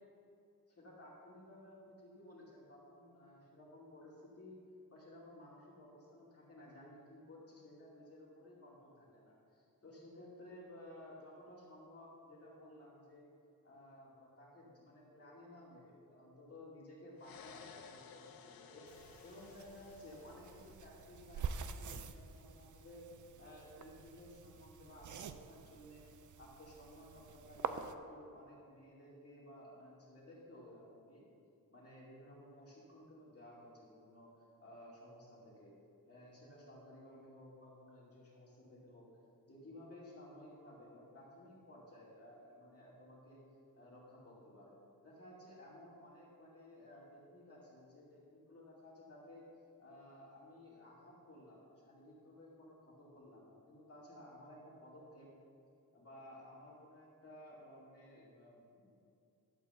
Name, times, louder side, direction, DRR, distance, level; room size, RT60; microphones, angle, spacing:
voice 1, 0.7-4.6 4.9-13.3 13.6-23.1 23.4-26.1 26.4-31.2 31.7-34.3 34.6-35.7 36.0-39.1 39.5-43.4 43.7-49.4 49.8-55.3 55.9-58.9, left 1 dB, 40° left, -6 dB, 2.4 m, -56 dB
sound 1, 17.2-21.1, left 6 dB, 75° left, 0.7 m, -57 dB
sound 2, 18.9-27.9, right 7 dB, 60° right, 0.4 m, -47 dB
11.5 x 4.7 x 6.9 m, 2.6 s
wide cardioid pair, 180°, 35 cm